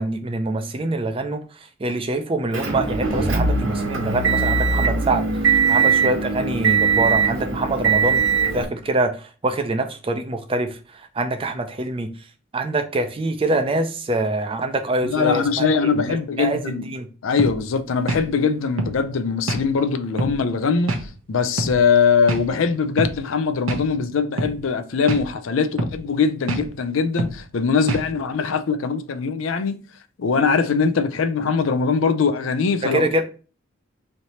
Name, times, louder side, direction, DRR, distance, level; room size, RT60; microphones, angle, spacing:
voice 1, 0.0-8.2 8.5-12.1 12.5-17.1 32.8-33.2, right 2 dB, 25° right, 0.4 m, -25 dB
Motor vehicle (road) / Engine, 2.5-8.6, right 5 dB, 65° right, 1.1 m, -20 dB
voice 2, 15.0-16.8 17.2-21.0 21.3-29.8 30.2-33.0, left 5 dB, 75° left, 0.5 m, -21 dB
sound 1, 17.4-17.6 18.1-18.3 18.8-19.0 19.5-19.7 20.2-20.4 20.9-21.0 21.6-21.8 22.3-22.5 23.0-23.1 23.7-23.8 24.4-24.6 25.1-25.3 25.8-26.0 26.5-26.7 27.2-27.4 27.9-28.1, right 2 dB, 85° right, 0.7 m, -25 dB
3.2 x 2.8 x 4.1 m
head